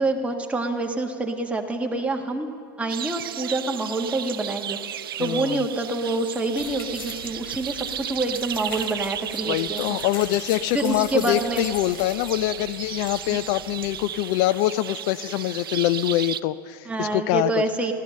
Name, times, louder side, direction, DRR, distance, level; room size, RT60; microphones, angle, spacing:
voice 1, 0.0-2.5 2.8-10.0 10.7-11.6 13.3-13.4 16.9-17.9, right 2 dB, 10° right, 2 dB, 1.6 m, -27 dB
sound 1, 2.9-16.4, right 11 dB, 85° right, 0.5 m, -34 dB
voice 2, 5.2-5.6 9.4-17.6, left 15 dB, 55° left, 15 dB, 0.4 m, -24 dB
sound 2, 6.6-14.1, left 4 dB, 85° left, 3.6 m, -42 dB
15.5 x 13.5 x 6.5 m, 2.4 s
hypercardioid pair, 100°, 12 cm